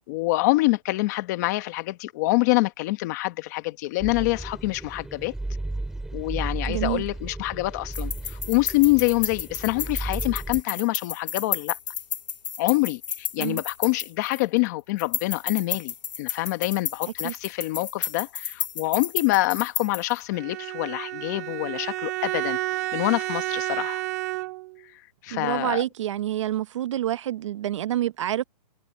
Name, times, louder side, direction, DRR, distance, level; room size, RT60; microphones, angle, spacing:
voice 1, 0.0-5.3 6.1-11.8 12.6-22.6 22.9-24.0 25.2-25.8, left 21 dB, 25° left, 1.1 m, -26 dB
sound 1, 4.0-10.6, right 2 dB, ahead, 3.4 m, -34 dB
voice 2, 6.7-7.0 13.4-13.6 17.2-17.3 25.3-28.4, right 12 dB, 45° right, 0.9 m, -27 dB
sound 2, 7.9-14.6 15.0-20.2, left 8 dB, 90° left, 2.9 m, -32 dB
Bowed string instrument, 20.3-24.8, right 18 dB, 25° right, 0.6 m, -30 dB
hypercardioid pair, 175°, 21 cm